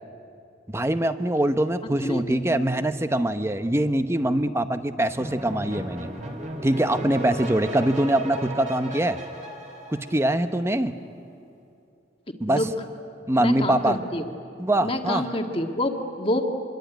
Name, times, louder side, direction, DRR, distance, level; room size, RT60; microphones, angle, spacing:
voice 1, 0.7-6.1 6.6-9.2 9.9-10.9 12.4-12.7 13.3-14.0 14.6-15.3, right 1 dB, 15° right, 10 dB, 0.9 m, -23 dB
voice 2, 2.0-2.6 12.5-12.7 13.4-14.2 14.8-16.5, left 1 dB, 30° left, 4 dB, 1.7 m, -27 dB
sound 1, 5.2-10.7, right 1 dB, 40° right, 3.7 m, -35 dB
26.0 x 22.5 x 9.3 m, 2.6 s
head